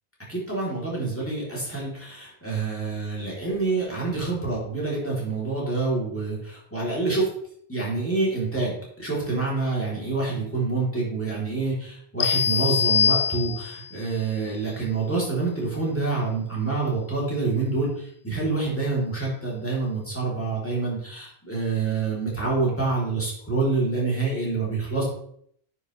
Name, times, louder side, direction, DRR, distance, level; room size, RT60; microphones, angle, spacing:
voice 1, 0.3-7.3 7.7-25.0, right 3 dB, 10° left, -5 dB, 3.3 m, -27 dB
sound 1, 12.2-13.9, left 6 dB, 75° left, 0.8 m, -23 dB
9.7 x 6.3 x 3.3 m, 0.65 s
omnidirectional pair, 1.1 m